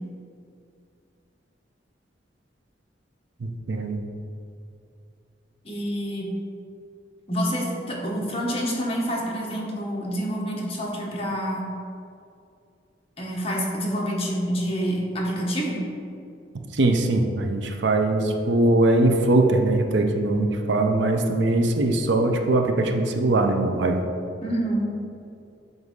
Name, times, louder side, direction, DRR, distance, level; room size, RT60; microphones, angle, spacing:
voice 1, 3.4-4.0 16.7-24.0, right 2 dB, 75° right, 4 dB, 0.6 m, -21 dB
voice 2, 5.6-6.3 7.3-11.6 13.2-15.8 24.4-24.8, equal, 35° left, -3 dB, 1.2 m, -27 dB
7.9 x 2.6 x 5.3 m, 2.4 s
head